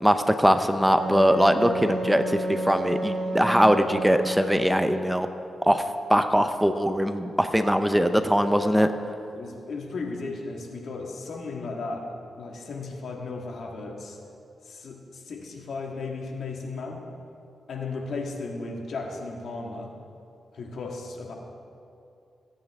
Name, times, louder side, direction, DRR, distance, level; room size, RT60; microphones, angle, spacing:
voice 1, 0.0-5.3 5.7-5.8 6.1-8.9, equal, 5° right, 8 dB, 0.6 m, -21 dB
Wind instrument woodwind instrument, 1.0-5.1, right 1 dB, 85° right, 1.8 m, -31 dB
voice 2, 9.3-12.1 12.4-14.2 14.6-17.1 17.7-19.9 20.5-21.4, left 3 dB, 70° left, 1 dB, 1.7 m, -35 dB
20.0 x 8.9 x 3.6 m, 2.6 s
cardioid pair, 70°, 0 cm